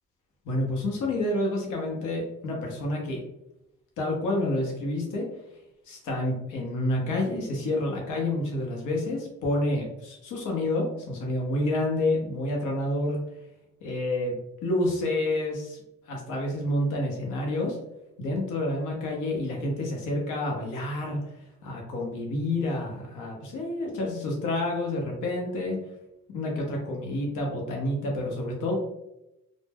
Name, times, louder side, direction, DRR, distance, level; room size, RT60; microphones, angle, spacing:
voice 1, 0.5-3.2 4.0-5.2 5.9-13.2 13.8-14.4 14.6-15.8 16.1-17.8 18.2-21.2 21.6-25.8 26.3-28.8, left 1 dB, 85° left, 0 dB, 0.7 m, -29 dB
2.1 x 2.1 x 3.2 m, 0.88 s
cardioid pair, 90°, 30 cm